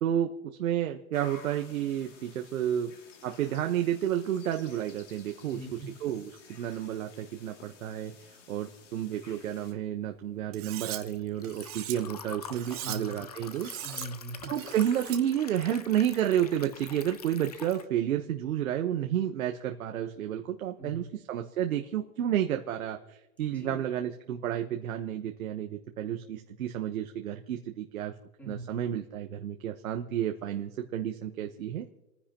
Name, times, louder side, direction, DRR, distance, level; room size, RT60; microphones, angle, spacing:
voice 1, 0.0-2.9 3.2-8.1 8.5-13.7 14.5-28.1 28.5-31.9, right 10 dB, 75° right, 4 dB, 1.2 m, -31 dB
sound 1, 1.1-9.7, left 6 dB, 60° left, 2.7 m, -53 dB
voice 2, 5.4-5.9 12.8-13.1 13.8-14.5 20.8-21.1 23.4-23.8 28.4-28.8, right 2 dB, 5° left, -2 dB, 3.1 m, -41 dB
Liquid, 9.6-17.9, left 6 dB, 30° left, 0.4 m, -46 dB
Cutlery silverware, 10.5-11.0 11.4-11.9 12.5-13.0 13.5-14.1 14.4-15.2, right 13 dB, 25° right, 0.9 m, -39 dB
30.0 x 10.0 x 3.0 m, 1.0 s
supercardioid pair, 170°, 42 cm